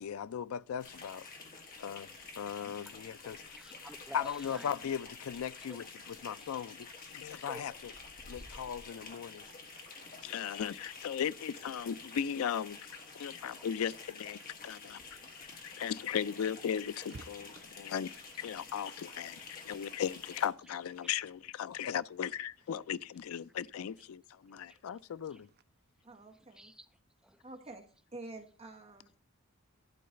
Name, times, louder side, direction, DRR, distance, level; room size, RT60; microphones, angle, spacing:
voice 1, 0.0-1.2 1.8-2.1 2.4-3.4 4.1-5.8 6.2-6.9 7.1-7.7 8.3-9.4 10.2-12.8 13.2-15.0 15.4-19.4 19.7-25.5, left 8 dB, 75° left, 0.4 m, -37 dB
sound 1, 0.8-20.5, left 4 dB, 45° left, 2.0 m, -50 dB
voice 2, 2.4-4.7 5.3-5.9 6.2-6.7 7.0-7.1 7.4-7.8 8.3-8.6 11.4-11.5 12.4-12.5 13.4-13.7 14.4-14.6 15.0-15.1 15.5-16.2 17.6-18.2 19.1-19.2 19.5-19.7 20.6-20.7 21.0-21.2 24.0-24.1 24.5-25.5 26.0-27.4, right 1 dB, 5° right, 0.6 m, -56 dB
sound 2, 9.2-23.6 24.3-25.6, right 3 dB, 50° right, 0.6 m, -62 dB
voice 3, 26.0-26.7 27.4-27.8 28.1-29.2, right 2 dB, 30° right, 1.2 m, -48 dB
11.5 x 3.9 x 6.6 m
head